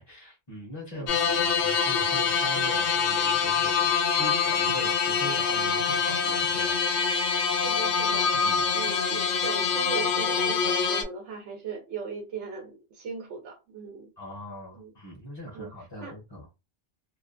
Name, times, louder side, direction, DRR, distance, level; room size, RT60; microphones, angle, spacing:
voice 1, 0.0-7.4 8.3-8.7 14.2-16.5, left 1 dB, 30° left, 0.5 m, -41 dB
sound 1, 1.1-11.0, left 6 dB, 80° left, 0.8 m, -25 dB
voice 2, 7.5-8.3 8.7-14.1 14.7-14.9 15.5-15.7 16.0-16.1, right 6 dB, 90° right, 1.0 m, -38 dB
2.5 x 2.2 x 2.4 m
omnidirectional pair, 1.1 m